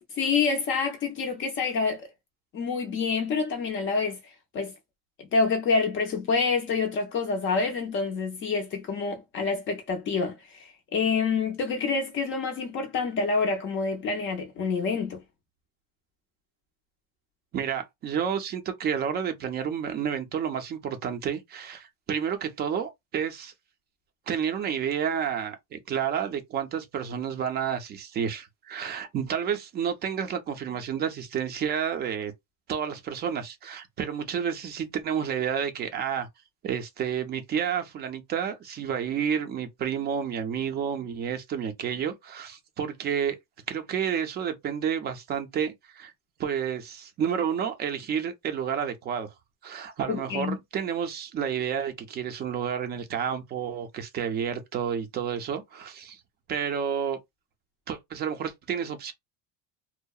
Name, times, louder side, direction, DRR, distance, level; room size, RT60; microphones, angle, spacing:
voice 1, 0.2-2.1 2.5-4.2 4.5-4.7 5.3-15.2 50.1-50.6, left 4 dB, 35° left, 0.4 m, -27 dB
voice 2, 17.5-23.5 24.3-32.3 32.7-36.3 36.6-43.4 43.7-46.1 46.4-49.3 49.6-56.2 56.5-57.2 57.9-59.1, right 8 dB, 25° right, 0.4 m, -30 dB
2.7 x 2.0 x 2.3 m
cardioid pair, 155°, 38 cm